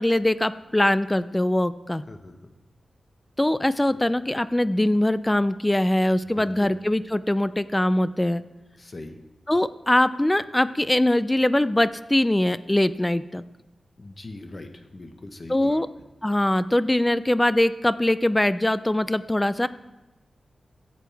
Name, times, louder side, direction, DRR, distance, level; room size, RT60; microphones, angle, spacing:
voice 1, 0.0-2.0 3.4-8.4 9.5-13.4 15.5-15.9 16.2-19.7, left 1 dB, 15° left, 15 dB, 0.4 m, -22 dB
voice 2, 6.2-6.7 8.8-9.2 14.0-15.8, left 2 dB, 40° left, 6 dB, 1.2 m, -41 dB
15.5 x 8.1 x 3.4 m, 1.0 s
wide cardioid pair, 85°, 0 cm